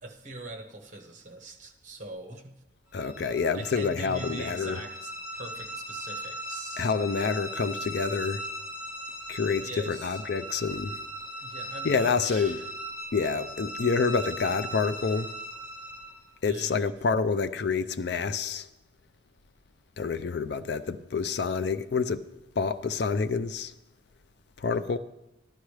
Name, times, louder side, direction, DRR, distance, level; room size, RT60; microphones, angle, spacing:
voice 1, 0.0-2.6 3.5-6.9 9.6-10.2 11.4-12.7 16.4-17.0, right 2 dB, 40° right, 1.1 m, -42 dB
voice 2, 2.9-4.8 6.8-8.4 9.3-10.9 11.8-12.6 13.1-15.3 16.4-18.7 20.0-22.2 22.6-23.7 24.6-25.0, left 5 dB, 55° left, 0.4 m, -28 dB
sound 1, 2.9-16.3, right 1 dB, 15° left, 4.7 m, -39 dB
14.5 x 11.5 x 3.3 m
head